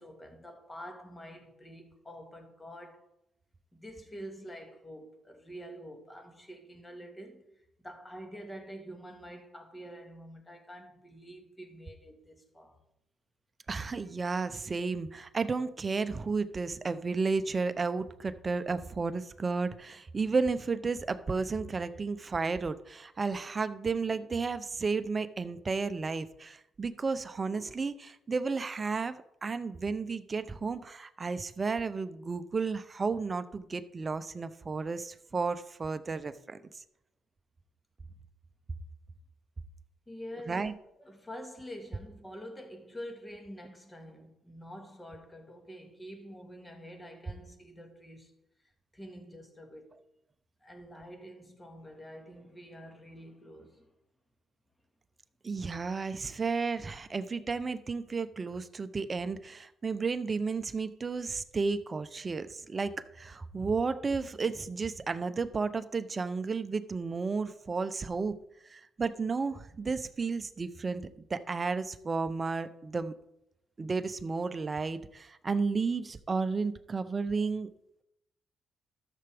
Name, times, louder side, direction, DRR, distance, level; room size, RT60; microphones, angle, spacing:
voice 1, 0.0-3.1 3.7-7.4 7.8-12.8 40.1-40.7 41.0-48.3 48.9-50.0 50.6-53.9, equal, 15° left, 1.8 m, -47 dB
voice 2, 13.7-36.8 40.5-40.7 55.4-68.4 68.7-73.1 73.8-77.7, right 4 dB, 30° right, 0.6 m, -33 dB
13.0 x 6.8 x 3.5 m
cardioid pair, 90°, 0 cm